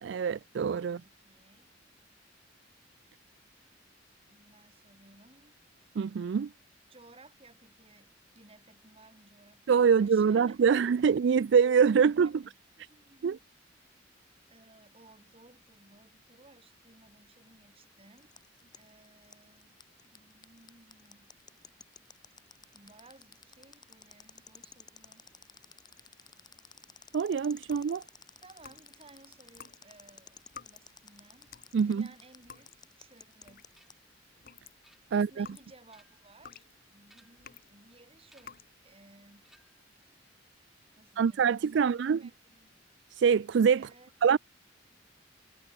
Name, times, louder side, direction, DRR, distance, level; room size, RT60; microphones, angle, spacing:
voice 1, 0.0-1.0 6.0-6.5 9.7-12.3 13.2-13.4 27.1-28.0 31.7-32.1 35.1-35.5 41.2-42.2 43.1-43.9 44.2-44.4, right 6 dB, 65° right, 0.4 m, -24 dB
voice 2, 0.8-1.7 2.7-2.8 4.3-5.6 6.9-10.7 11.0-11.4 12.0-13.4 14.5-18.3 18.6-19.8 20.1-21.3 22.7-25.3 28.4-31.5 31.8-33.7 35.1-39.5 41.0-42.8 43.8-44.1, right 2 dB, 30° right, 5.2 m, -59 dB
sound 1, 18.2-34.0, left 6 dB, 20° left, 7.6 m, -53 dB
sound 2, 27.6-29.1 29.5-33.9 34.3-37.8 38.3-38.7, left 7 dB, 50° left, 1.1 m, -53 dB
sound 3, 33.8-34.1 34.8-35.4 35.8-36.4 37.0-37.6 38.3-38.7 39.4-39.9, equal, ahead, 6.8 m, -64 dB
head